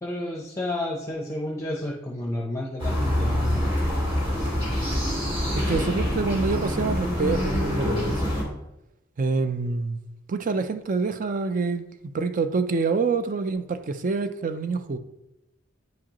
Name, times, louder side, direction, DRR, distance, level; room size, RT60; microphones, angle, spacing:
voice 1, 0.0-3.8, left 1 dB, 15° left, 0.7 m, -31 dB
sound 1, 2.8-8.4, left 1 dB, 25° right, 2.1 m, -25 dB
voice 2, 5.6-8.4 9.2-10.0 10.3-11.9 12.1-15.0, right 4 dB, 45° right, 0.4 m, -26 dB
9.3 x 5.0 x 3.0 m
head